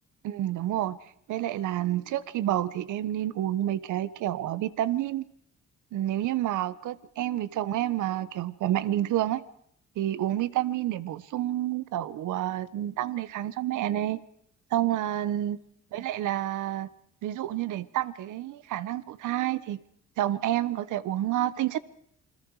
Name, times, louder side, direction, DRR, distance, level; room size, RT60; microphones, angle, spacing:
voice 1, 0.2-1.0 1.3-5.2 5.9-9.4 10.0-14.2 14.7-15.6 15.9-16.9 17.2-19.8 20.2-21.8, right 13 dB, 80° right, 16 dB, 1.1 m, -29 dB
28.0 x 21.5 x 4.9 m, 0.71 s
cardioid pair, 90°, 30 cm